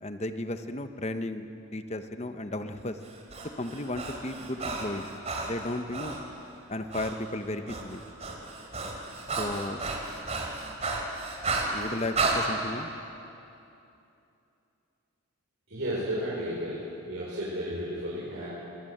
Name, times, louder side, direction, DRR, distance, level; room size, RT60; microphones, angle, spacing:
voice 1, 0.0-3.0 3.4-5.1 5.4-6.2 6.7-8.0 9.4-9.8 11.7-12.9, left 1 dB, 30° left, 8 dB, 1.0 m, -34 dB
Breathing, 3.0-6.2 6.9-7.1 7.4-12.4, right 3 dB, 30° right, 3.1 m, -33 dB
voice 2, 15.7-18.5, equal, 60° right, -7 dB, 4.8 m, -33 dB
24.5 x 20.0 x 8.0 m, 2.7 s
head